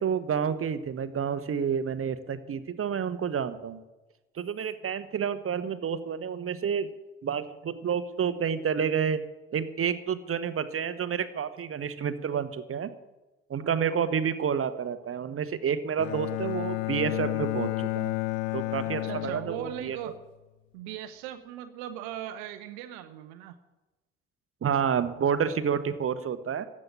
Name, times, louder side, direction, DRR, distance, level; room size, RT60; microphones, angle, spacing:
voice 1, 0.0-3.8 4.4-6.9 7.2-9.2 9.5-12.9 13.5-18.1 18.5-20.0 24.6-26.6, right 7 dB, 40° right, 13 dB, 1.2 m, -29 dB
voice 2, 13.6-14.1 18.9-20.2 20.7-23.6, right 11 dB, 70° right, 12 dB, 0.8 m, -39 dB
Bowed string instrument, 16.0-20.1, left 23 dB, 65° left, 0.5 m, -31 dB
14.5 x 7.5 x 9.9 m, 1.1 s
figure-of-eight pair, 45°, 32 cm